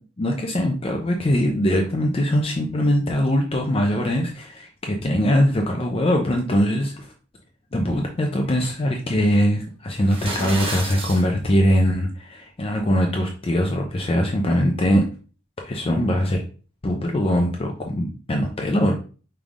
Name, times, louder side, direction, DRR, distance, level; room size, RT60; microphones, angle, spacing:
voice 1, 0.2-7.1 7.7-15.1 15.6-16.4 16.8-18.9, equal, 30° left, 2 dB, 0.5 m, -22 dB
sound 1, 10.0-11.2, right 1 dB, 30° right, 1.0 m, -30 dB
5.3 x 3.3 x 2.4 m, 0.37 s
head